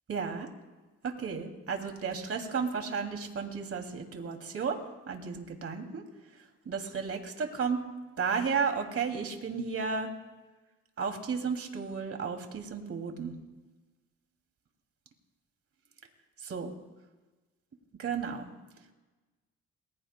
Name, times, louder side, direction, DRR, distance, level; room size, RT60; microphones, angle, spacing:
voice 1, 0.1-0.5 1.0-6.0 6.7-7.8 8.2-10.1 11.0-13.3 16.4-16.7 18.0-18.4, right 5 dB, 50° right, 4 dB, 2.7 m, -33 dB
28.5 x 21.0 x 2.2 m, 1.2 s
cardioid pair, 90°, 30 cm